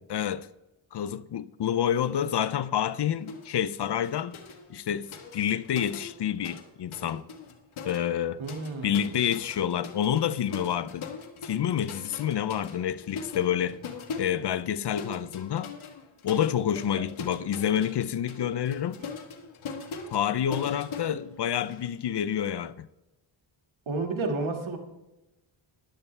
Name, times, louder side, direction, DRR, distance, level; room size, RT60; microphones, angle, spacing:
voice 1, 0.1-0.5 0.9-4.4 4.7-7.2 7.8-8.4 8.8-11.1 11.4-13.8 14.2-15.7 16.2-19.0 20.1-22.9, left 9 dB, 55° left, 0.6 m, -28 dB
sound 1, 3.3-3.5 3.8-6.7 6.9-21.9, left 4 dB, 85° left, 1.4 m, -41 dB
voice 2, 8.4-9.1 23.9-24.8, right 3 dB, 75° right, 2.0 m, -31 dB
14.0 x 11.0 x 3.3 m
cardioid pair, 70°, 48 cm